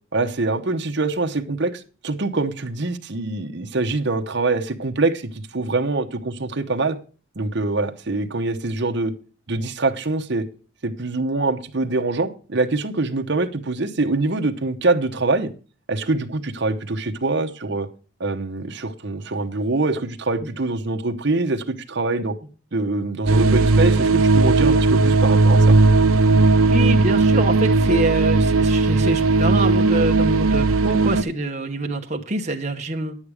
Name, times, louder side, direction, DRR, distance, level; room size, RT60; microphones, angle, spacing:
voice 1, 0.1-5.2 5.5-7.0 7.4-9.1 9.5-10.4 10.8-15.5 15.9-17.9 18.2-22.3 22.7-25.8, right 3 dB, 55° right, 4 dB, 0.9 m, -24 dB
sound 1, 23.3-31.2, right 3 dB, 90° right, 0.6 m, -16 dB
voice 2, 26.7-33.2, right 2 dB, 35° right, 3 dB, 1.0 m, -25 dB
9.8 x 8.7 x 4.9 m, 0.37 s
head